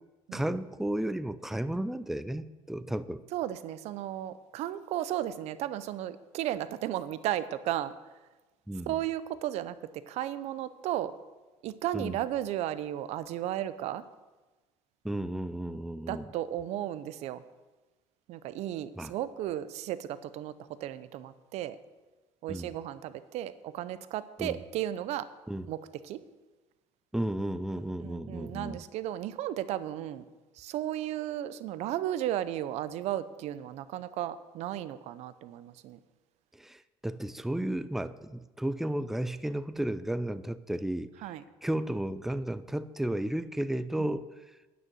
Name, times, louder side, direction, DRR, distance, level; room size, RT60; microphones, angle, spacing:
voice 1, 0.3-3.2 8.7-9.0 11.9-12.2 15.0-16.3 19.0-19.1 22.5-22.7 24.4-24.6 25.5-25.7 27.1-28.8 36.6-41.1 41.6-44.3, right 1 dB, 5° right, 13 dB, 0.4 m, -33 dB
voice 2, 3.3-7.9 8.9-9.8 10.1-11.1 11.6-14.0 16.1-17.4 18.3-20.5 20.8-21.8 22.4-25.3 25.7-26.2 28.0-30.2 30.6-36.0 41.2-41.4 44.0-44.1, right 12 dB, 65° right, 14 dB, 0.6 m, -34 dB
9.4 x 6.3 x 7.6 m, 1.2 s
cardioid pair, 115°, 12 cm